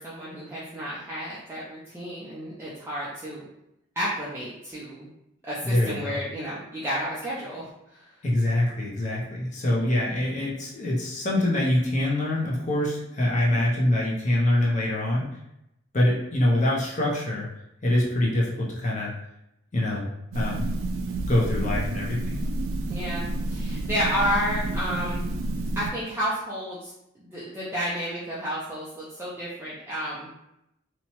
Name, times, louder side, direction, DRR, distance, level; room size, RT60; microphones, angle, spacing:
voice 1, 0.0-3.4 4.0-5.1 5.4-8.2 22.9-25.3 25.8-30.3, equal, 10° right, -9 dB, 0.4 m, -31 dB
voice 2, 5.6-6.2 8.2-15.3 15.9-17.5 17.8-19.1 19.7-20.7 21.3-22.4, left 1 dB, 35° left, -4 dB, 0.6 m, -24 dB
sound 1, 20.3-25.9, right 2 dB, 80° right, 0.3 m, -29 dB
2.8 x 2.1 x 2.9 m, 0.84 s
head